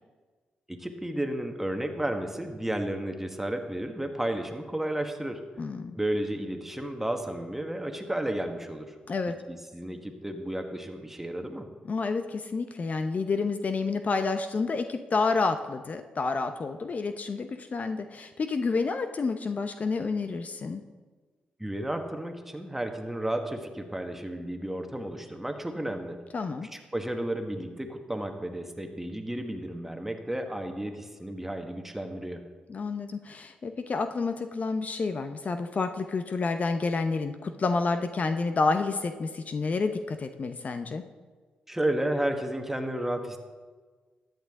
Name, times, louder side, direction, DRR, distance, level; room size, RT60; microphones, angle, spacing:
voice 1, 0.7-5.4 5.9-8.9 9.5-11.7 21.6-26.2 26.6-32.5 41.7-43.4, right 1 dB, 10° right, 5 dB, 1.4 m, -32 dB
voice 2, 5.6-6.0 9.1-9.3 11.9-20.8 26.3-26.7 32.7-41.0, left 4 dB, 50° left, 8 dB, 0.7 m, -29 dB
13.5 x 9.1 x 3.7 m, 1.4 s
supercardioid pair, 55°, 3 cm